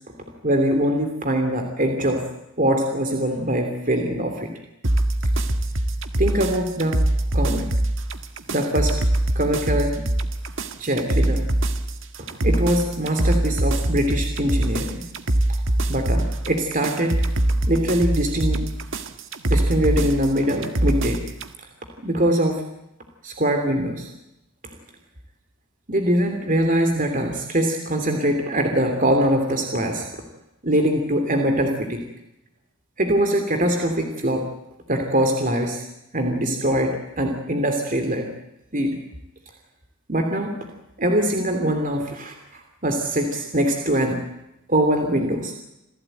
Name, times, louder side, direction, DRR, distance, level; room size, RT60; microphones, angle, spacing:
voice 1, 0.4-2.2 2.6-4.5 6.2-7.0 7.3-7.7 8.5-8.9 9.3-10.0 10.8-11.4 12.4-15.0 15.9-17.2 17.7-18.6 19.5-21.2 22.0-22.6 23.2-24.1 25.9-30.0 30.6-32.0 33.0-34.5 34.9-35.8 36.1-38.3 38.7-39.0 40.1-40.5 41.0-44.2 44.7-45.5, right 1 dB, 35° right, 4 dB, 3.0 m, -22 dB
sound 1, 4.8-21.5, right 1 dB, 60° right, 1.6 m, -23 dB
27.5 x 16.5 x 9.1 m, 0.88 s
head